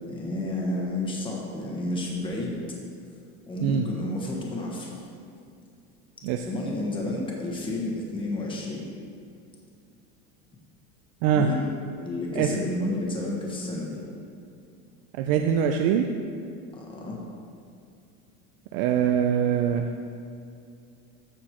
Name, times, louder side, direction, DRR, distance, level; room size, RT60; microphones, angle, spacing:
voice 1, 0.1-2.7 3.5-5.0 6.4-8.9 11.3-11.7 12.0-14.0 16.7-17.2, left 1 dB, 15° left, -2 dB, 1.3 m, -31 dB
voice 2, 15.2-16.1 18.7-19.9, right 8 dB, 55° right, 4 dB, 0.4 m, -23 dB
14.0 x 6.2 x 3.0 m, 2.4 s
cardioid pair, 165°, 35 cm